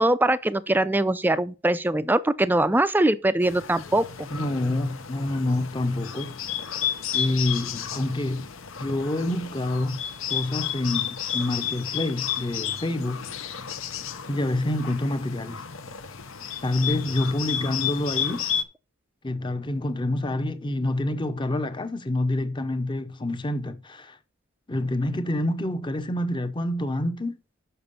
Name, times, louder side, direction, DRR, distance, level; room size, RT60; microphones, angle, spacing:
voice 1, 0.0-4.3, right 1 dB, 10° right, 0.4 m, -22 dB
Bird, 3.4-18.6, left 9 dB, 75° left, 0.8 m, -32 dB
voice 2, 4.3-6.4 7.1-8.5 8.8-10.0 10.3-13.2 14.3-15.6 16.6-18.5 19.2-24.2 24.7-27.4, left 1 dB, 20° left, 0.7 m, -27 dB
6.8 x 6.0 x 5.4 m
head